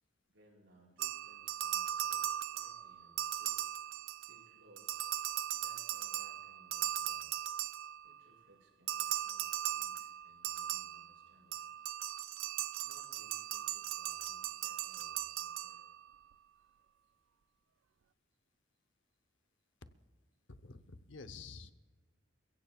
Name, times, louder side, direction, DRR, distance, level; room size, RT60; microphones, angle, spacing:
voice 1, 0.3-5.0 5.5-7.4 8.0-11.6 12.8-15.8, right 1 dB, 70° right, -2 dB, 5.6 m, -65 dB
sound 1, 1.0-4.5 4.8-8.2 8.9-16.1, right 12 dB, 90° right, 0.3 m, -38 dB
voice 2, 20.5-21.7, left 4 dB, 75° left, 11 dB, 0.8 m, -50 dB
28.5 x 16.0 x 2.4 m, 1.4 s
head